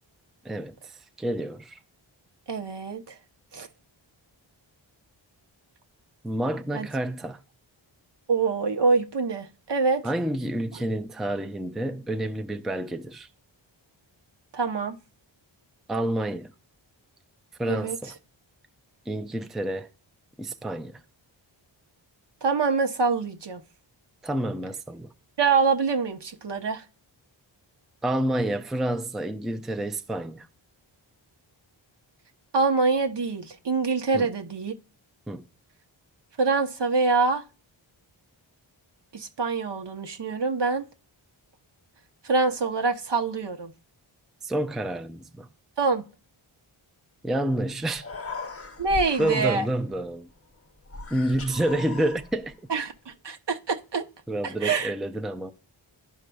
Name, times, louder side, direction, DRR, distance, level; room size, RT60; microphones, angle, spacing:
voice 1, 0.4-1.8 6.2-7.4 10.0-13.3 15.9-16.5 17.6-18.2 19.1-19.9 20.4-21.0 24.2-25.1 28.0-30.5 34.1-34.3 35.3-35.4 44.4-45.5 47.2-48.1 49.2-50.3 51.1-52.5 54.3-55.5, right 1 dB, ahead, 0.5 m, -29 dB
voice 2, 2.5-3.0 3.5-3.7 6.7-6.9 8.3-10.0 14.5-15.0 17.7-18.0 22.4-23.6 25.4-26.8 32.5-34.7 36.4-37.4 39.1-40.9 42.2-43.7 45.8-46.0 48.8-49.6 52.7-54.0 54.4-54.9, right 4 dB, 60° right, 1.0 m, -25 dB
Human voice, 47.6-47.7 47.9-50.0 50.9-52.5, left 3 dB, 30° left, 0.8 m, -38 dB
12.5 x 4.7 x 2.3 m
cardioid pair, 50°, 48 cm